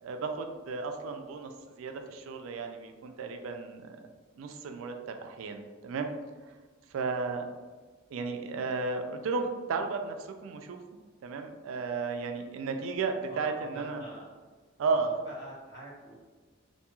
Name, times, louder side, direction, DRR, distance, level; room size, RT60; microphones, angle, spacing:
voice 1, 0.0-4.0 4.4-6.1 6.9-7.5 8.1-10.8 11.2-14.0 14.8-15.1, right 4 dB, 80° right, 6 dB, 0.3 m, -34 dB
voice 2, 13.3-14.3 15.2-16.1, right 1 dB, 55° left, -7 dB, 1.2 m, -46 dB
2.6 x 2.3 x 2.9 m, 1.3 s
head